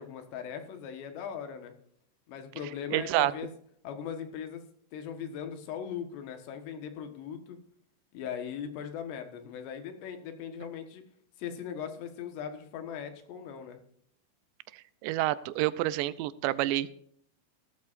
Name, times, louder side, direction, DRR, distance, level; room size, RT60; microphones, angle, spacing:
voice 1, 0.0-1.7 2.3-3.5 3.8-4.6 4.9-7.6 8.1-11.0 11.4-13.8, left 8 dB, 80° left, 7 dB, 3.6 m, -39 dB
voice 2, 2.9-3.3 14.7-17.0, right 15 dB, 85° right, 16 dB, 2.9 m, -28 dB
16.0 x 13.0 x 2.6 m, 0.66 s
omnidirectional pair, 5.0 m